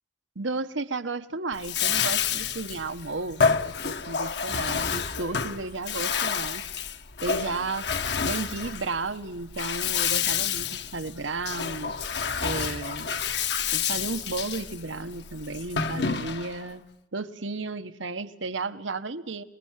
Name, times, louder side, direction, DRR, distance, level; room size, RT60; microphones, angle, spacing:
voice 1, 0.3-6.6 7.2-7.9 8.2-12.0 12.4-13.1 13.7-16.8 17.1-19.4, right 3 dB, 85° right, 10 dB, 1.3 m, -33 dB
Bathtub (filling or washing), 1.5-16.7, left 6 dB, 60° left, 1.2 m, -29 dB
26.0 x 21.0 x 7.5 m, 0.88 s
head